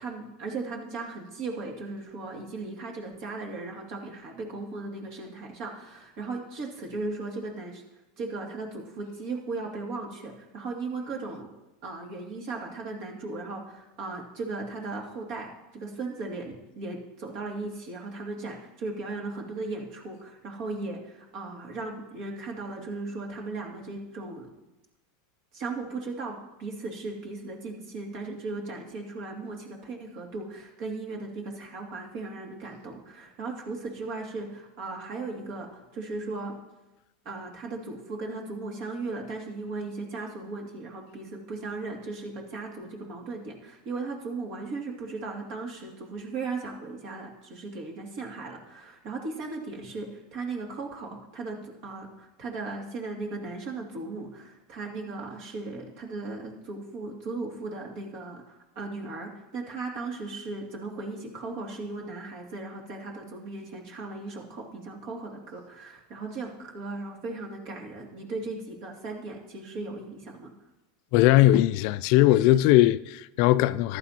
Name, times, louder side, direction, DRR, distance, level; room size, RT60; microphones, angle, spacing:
voice 1, 0.0-7.8 8.2-11.5 11.8-24.5 25.5-36.6 37.2-70.5, right 3 dB, 60° right, 2.4 m, -37 dB
voice 2, 71.1-74.0, left 15 dB, 60° left, 0.4 m, -20 dB
14.5 x 11.0 x 2.9 m
hypercardioid pair, 100°, 0 cm